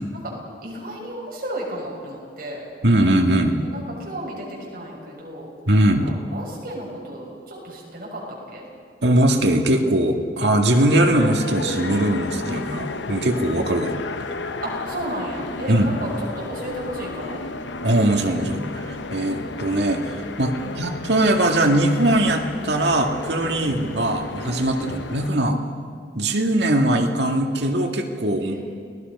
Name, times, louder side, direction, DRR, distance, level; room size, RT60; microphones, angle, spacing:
voice 1, 0.6-2.6 3.6-8.6 12.5-13.0 14.6-17.4 20.6-20.8 23.6-23.8 24.8-25.0 28.4-28.6, right 1 dB, 55° right, -3 dB, 6.4 m, -34 dB
voice 2, 2.8-3.6 5.7-6.1 9.0-13.9 15.7-15.9 17.8-25.6 26.2-28.6, right 1 dB, 70° right, 3 dB, 2.0 m, -20 dB
sound 1, 10.7-25.3, left 3 dB, 90° left, 0.9 m, -33 dB
29.5 x 19.5 x 5.5 m, 2.1 s
head